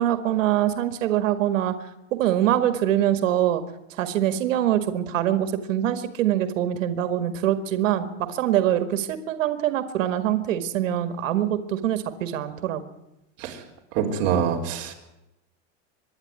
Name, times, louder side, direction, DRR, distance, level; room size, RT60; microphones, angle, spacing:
voice 1, 0.0-1.7 2.1-3.6 3.9-12.8, right 11 dB, 85° right, 10 dB, 1.9 m, -24 dB
voice 2, 13.9-14.9, right 7 dB, 40° right, 0 dB, 4.2 m, -25 dB
25.0 x 11.0 x 9.6 m, 0.90 s
supercardioid pair, 175°, 37 cm